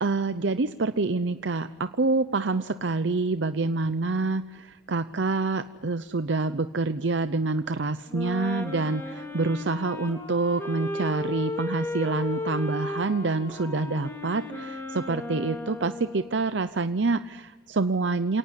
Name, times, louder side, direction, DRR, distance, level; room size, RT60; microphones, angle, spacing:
voice 1, 0.0-18.4, right 3 dB, 75° right, 11 dB, 0.7 m, -27 dB
Wind instrument woodwind instrument, 8.1-16.5, left 2 dB, 15° left, 3.7 m, -35 dB
28.0 x 18.5 x 9.8 m, 1.2 s
head